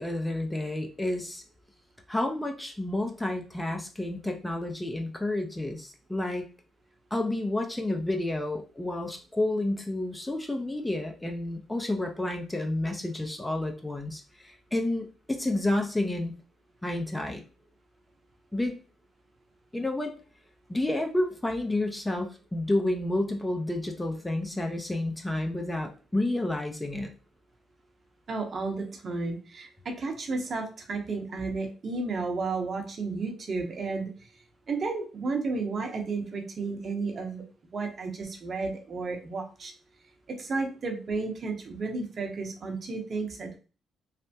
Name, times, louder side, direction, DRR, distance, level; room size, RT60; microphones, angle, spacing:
voice 1, 0.0-1.4 2.1-6.5 7.1-16.3 16.8-17.4 18.5-18.8 19.7-20.1 20.7-27.1, left 1 dB, 15° left, 4 dB, 0.6 m, -30 dB
voice 2, 28.3-34.3 34.7-37.4 37.7-39.7 40.3-43.6, right 3 dB, 50° right, 3 dB, 0.9 m, -32 dB
3.3 x 2.1 x 2.8 m, 0.35 s
supercardioid pair, 55°, 0 cm